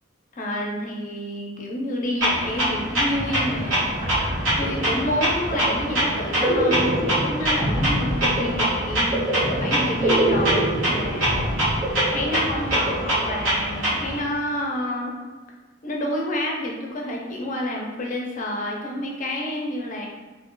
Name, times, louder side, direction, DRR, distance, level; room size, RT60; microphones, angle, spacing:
voice 1, 0.4-3.9 4.6-9.2 9.5-11.5 12.1-15.2 15.8-20.1, left 1 dB, 40° left, -1 dB, 0.6 m, -29 dB
Clock, 2.2-14.2, right 1 dB, 90° right, 1.4 m, -25 dB
sound 1, 2.8-2.9 3.1-13.7, right 1 dB, 30° right, 0.8 m, -27 dB
2.8 x 2.3 x 3.8 m, 1.3 s
head